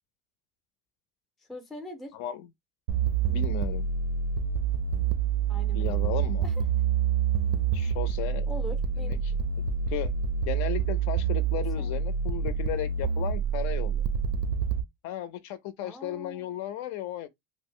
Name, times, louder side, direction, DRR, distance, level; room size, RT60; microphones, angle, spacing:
voice 1, 1.4-2.1 5.5-6.5 8.5-9.2 11.5-11.9 15.8-16.6, equal, ahead, 0.4 m, -43 dB
voice 2, 2.1-2.5 3.3-3.8 5.7-6.5 7.7-8.5 9.0-9.3 9.9-10.1 10.5-14.0 15.0-17.3, left 12 dB, 60° left, 0.5 m, -35 dB
sound 1, 2.9-14.8, right 7 dB, 90° right, 0.5 m, -27 dB
2.8 x 2.0 x 3.6 m
cardioid pair, 180°, 33 cm